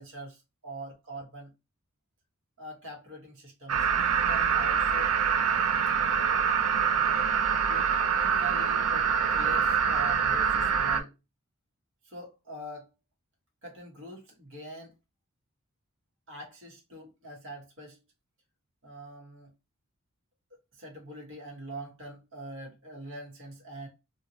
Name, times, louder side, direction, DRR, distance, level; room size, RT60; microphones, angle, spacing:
voice 1, 0.0-1.5 2.6-5.1 5.6-6.2 7.7-7.9 8.2-11.1 12.0-12.9 13.6-14.9 16.3-18.0 18.8-19.5 20.7-23.9, right 1 dB, 60° right, 1.2 m, -43 dB
sound 1, 3.7-11.0, right 7 dB, 85° right, 0.5 m, -25 dB
2.7 x 2.5 x 2.8 m
head